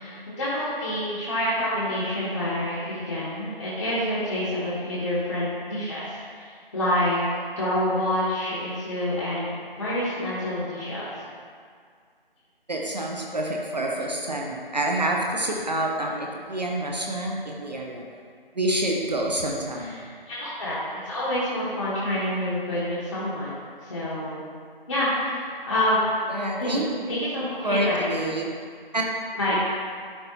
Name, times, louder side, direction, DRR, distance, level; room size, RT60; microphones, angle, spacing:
voice 1, 0.0-7.2 7.6-11.1 19.8-20.8 21.0-23.5 23.8-24.4 24.9-26.3 26.6-26.8 27.1-28.4 29.4-29.6, left 1 dB, 30° left, -11 dB, 1.2 m, -27 dB
voice 2, 12.7-18.0 18.6-20.0 26.3-27.2 27.6-28.5 28.9-29.0, right 1 dB, 45° right, -1 dB, 0.7 m, -27 dB
11.0 x 4.2 x 2.8 m, 2.1 s
figure-of-eight pair, 160°, 29 cm